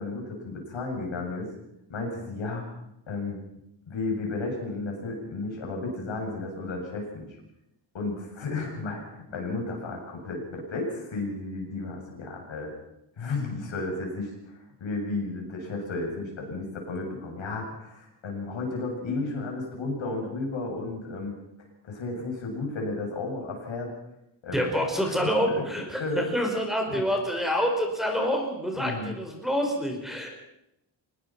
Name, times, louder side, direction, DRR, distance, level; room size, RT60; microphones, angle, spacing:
voice 1, 0.0-1.5 1.9-2.6 3.1-3.4 3.9-7.4 7.9-12.7 13.2-21.3 21.8-23.9 24.4-24.7 25.0-26.2 26.9-27.0 28.7-29.1, left 3 dB, 85° left, 1 dB, 7.8 m, -33 dB
voice 2, 24.5-30.3, equal, ahead, 1 dB, 5.4 m, -27 dB
25.0 x 20.5 x 6.0 m, 0.83 s
wide cardioid pair, 125°, 45 cm